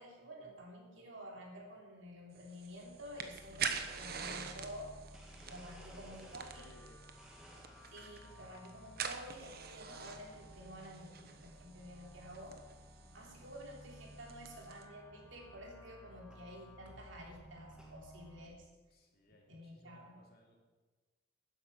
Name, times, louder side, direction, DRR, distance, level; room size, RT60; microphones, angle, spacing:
voice 1, 0.0-5.0 5.5-6.7 7.9-12.6 13.1-18.7 19.5-20.2, equal, 65° right, -1 dB, 3.4 m, -51 dB
sound 1, 2.4-14.8, right 6 dB, 45° right, 1.1 m, -46 dB
sound 2, 2.6-18.5, equal, 10° left, 1.4 m, -57 dB
Domestic sounds home sounds, 3.9-6.8 7.2-8.2 8.7-9.2 10.2-10.5 11.1-11.2 12.0-12.1 12.4-12.7 13.2-13.3 13.4-13.5 14.0-14.1 15.4-15.5 16.3-16.5 17.1-18.0, equal, 5° right, 1.7 m, -60 dB
voice 2, 5.8-7.1 18.9-20.6, left 2 dB, 45° left, 0 dB, 2.7 m, -62 dB
13.0 x 10.0 x 6.3 m, 1.3 s
head